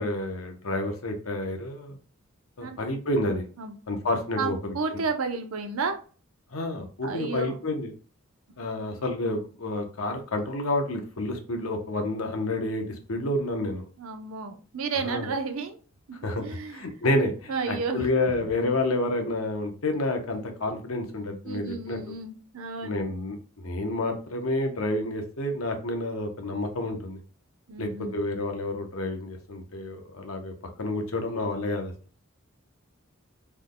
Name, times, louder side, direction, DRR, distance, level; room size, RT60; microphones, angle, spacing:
voice 1, 0.0-2.0 2.6-3.5 3.9-4.7 6.5-7.9 8.6-12.8 13.1-13.9 15.0-15.3 16.2-16.4 16.7-22.0 22.8-27.2 27.8-30.5 30.8-31.9, left 2 dB, 75° left, 5 dB, 0.8 m, -29 dB
voice 2, 4.4-6.0 7.0-7.5 14.0-15.8 16.1-16.9 17.5-18.1 21.4-23.1 27.7-28.2, right 4 dB, 80° right, 5 dB, 0.6 m, -32 dB
3.4 x 2.2 x 3.7 m, 0.38 s
head